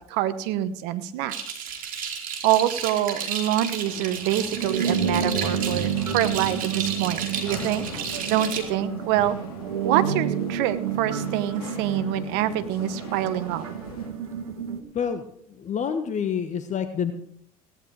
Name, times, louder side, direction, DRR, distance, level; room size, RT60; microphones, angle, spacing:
voice 1, 0.0-1.4 2.4-5.9 6.1-7.9 8.3-9.4 9.8-13.7, right 12 dB, 65° right, 12 dB, 1.1 m, -25 dB
sound 1, 1.3-8.6, right 7 dB, 50° right, 3.4 m, -33 dB
sound 2, 3.8-14.1, left 6 dB, 85° left, 3.2 m, -42 dB
sound 3, 4.5-14.8, right 7 dB, 80° right, 1.5 m, -30 dB
voice 2, 15.6-17.1, left 7 dB, 40° left, 8 dB, 1.3 m, -27 dB
17.0 x 10.0 x 4.7 m, 0.68 s
hypercardioid pair, 65°, 19 cm